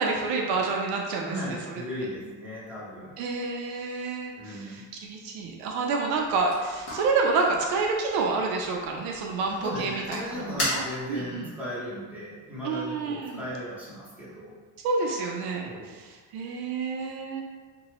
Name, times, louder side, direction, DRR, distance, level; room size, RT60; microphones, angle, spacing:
voice 1, 0.0-1.8 3.2-10.4 10.7-11.5 12.6-13.4 14.8-17.5, right 4 dB, 70° right, 1 dB, 0.5 m, -29 dB
voice 2, 1.3-3.1 4.3-4.8 9.5-14.5 15.6-16.0, equal, 5° right, -10 dB, 0.8 m, -36 dB
sound 1, 6.1-11.3, left 1 dB, 40° left, 1.1 m, -37 dB
2.9 x 2.2 x 2.8 m, 1.4 s
cardioid pair, 150°, 40 cm